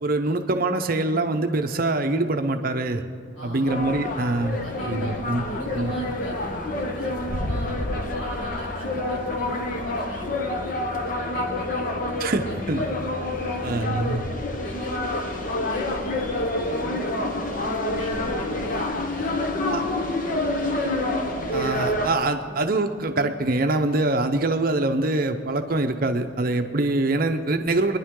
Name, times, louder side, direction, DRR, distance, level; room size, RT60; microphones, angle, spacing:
voice 1, 0.0-3.0 3.4-4.6 4.9-5.4 5.7-5.9 12.2-12.8 13.6-14.2 19.7-19.8 21.5-28.0, right 2 dB, 45° right, 6 dB, 0.7 m, -24 dB
voice 2, 3.4-3.8 4.6-5.1 5.4-12.9 13.5-14.3 14.6-21.0 22.5-22.6, equal, 60° left, -4 dB, 4.4 m, -39 dB
sound 1, 3.7-22.2, left 1 dB, 40° left, 1.0 m, -28 dB
24.0 x 10.5 x 3.8 m, 2.3 s
head